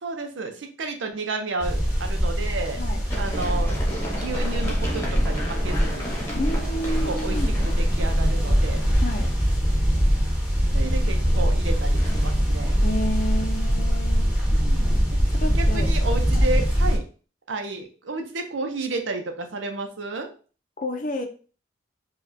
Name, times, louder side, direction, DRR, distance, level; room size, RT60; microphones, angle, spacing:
voice 1, 0.0-2.8 3.2-3.8 4.1-6.1 7.0-8.8 10.7-12.8 14.5-14.9 15.5-17.0 17.5-20.3, right 3 dB, 90° right, 5 dB, 0.7 m, -32 dB
sound 1, 1.6-17.0, equal, 5° right, 1.1 m, -22 dB
Run, 3.1-8.9 10.8-12.3, equal, 15° left, 1.0 m, -35 dB
voice 2, 6.3-7.5 9.0-9.3 12.8-14.3 15.4-15.9 16.3-16.4 20.8-21.3, left 1 dB, 45° left, 5 dB, 0.6 m, -30 dB
5.1 x 2.4 x 2.7 m, 0.38 s
head